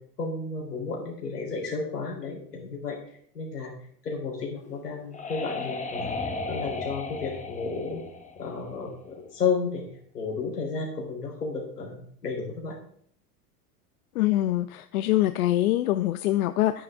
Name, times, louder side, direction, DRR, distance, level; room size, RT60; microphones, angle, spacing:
voice 1, 0.2-3.0 3.3-3.7 4.0-6.1 6.5-8.0 8.4-9.8 10.1-12.8, left 4 dB, 85° left, -1 dB, 3.6 m, -32 dB
sound 1, 4.6-9.2, left 3 dB, 15° left, 1.3 m, -35 dB
voice 2, 14.2-16.8, left 14 dB, 65° left, 12 dB, 0.7 m, -24 dB
10.0 x 9.8 x 3.5 m, 0.63 s
hypercardioid pair, 85°, 46 cm